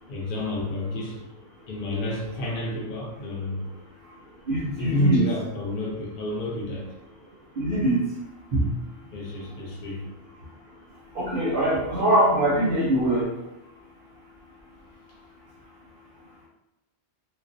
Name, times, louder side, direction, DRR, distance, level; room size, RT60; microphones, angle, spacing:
voice 1, 0.1-1.2 1.7-3.7 4.8-6.9 9.1-10.0, equal, 55° left, -3 dB, 0.7 m, -30 dB
voice 2, 4.5-5.2 7.6-8.0 8.5-8.7 11.1-13.3, right 1 dB, 55° right, -6 dB, 0.6 m, -22 dB
2.4 x 2.0 x 2.4 m, 0.94 s
omnidirectional pair, 1.3 m